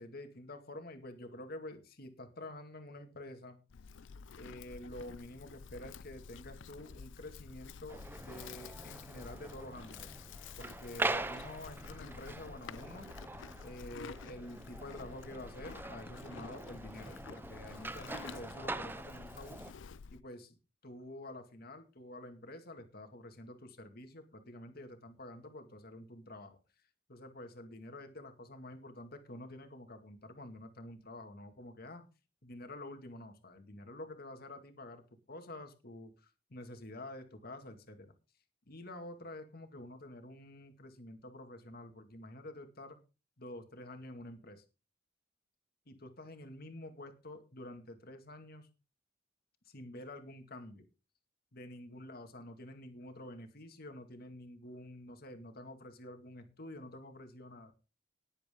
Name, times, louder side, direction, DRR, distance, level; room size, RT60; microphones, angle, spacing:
voice 1, 0.0-3.6 4.4-10.1 10.6-13.1 13.6-19.6 20.1-20.6 20.8-26.6 27.1-32.0 32.4-38.1 38.7-43.0 43.4-44.6 45.9-48.7 49.7-50.8 51.5-57.7, left 1 dB, 55° left, 6 dB, 2.3 m, -48 dB
Livestock farm animals working animals, 3.7-20.2, left 5 dB, 75° left, 0.5 m, -50 dB
sound 1, 7.9-19.7, right 2 dB, 10° right, 0.6 m, -43 dB
19.5 x 8.1 x 3.8 m, 0.31 s
head